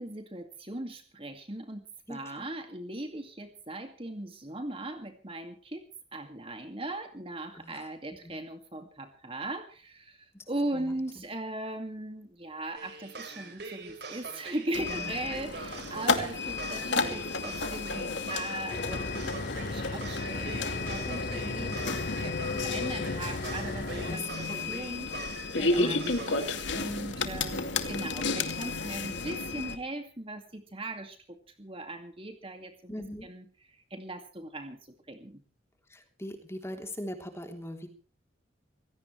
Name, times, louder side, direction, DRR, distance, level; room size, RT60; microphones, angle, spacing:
voice 1, 0.0-5.8 6.1-32.9 33.2-34.8 35.1-35.4, right 1 dB, 30° right, 6 dB, 2.2 m, -39 dB
voice 2, 2.1-2.5 7.5-7.9 8.2-8.4 10.3-10.4 10.7-11.2 14.9-15.3 24.0-24.2 24.5-24.8 25.7-26.1 32.9-33.3 35.9-37.9, equal, 15° left, 4 dB, 3.3 m, -41 dB
sound 1, 12.8-26.4, right 4 dB, 55° right, 5.0 m, -43 dB
sound 2, 14.7-29.8, left 3 dB, 70° left, 2.4 m, -32 dB
sound 3, 18.7-24.2, left 3 dB, 50° left, 1.1 m, -36 dB
25.0 x 17.5 x 3.3 m, 0.39 s
head